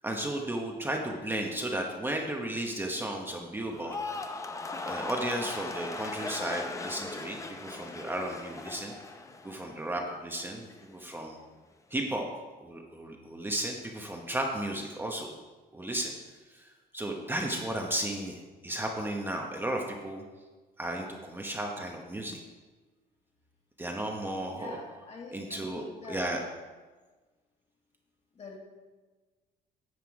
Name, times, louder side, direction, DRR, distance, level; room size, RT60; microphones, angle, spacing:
voice 1, 0.0-4.0 4.8-8.9 9.4-11.4 11.9-12.3 12.6-15.3 15.7-16.1 16.5-16.7 16.9-20.2 20.8-22.4 23.8-24.8 25.3-26.4, right 1 dB, 10° right, 1 dB, 1.0 m, -34 dB
sound 1, 3.7-10.0 10.3-10.8, left 3 dB, 20° left, 0.7 m, -39 dB
voice 2, 24.5-26.5 28.4-28.6, left 4 dB, 40° left, 0 dB, 2.1 m, -45 dB
9.6 x 5.9 x 4.8 m, 1.3 s
cardioid pair, 110°, 17 cm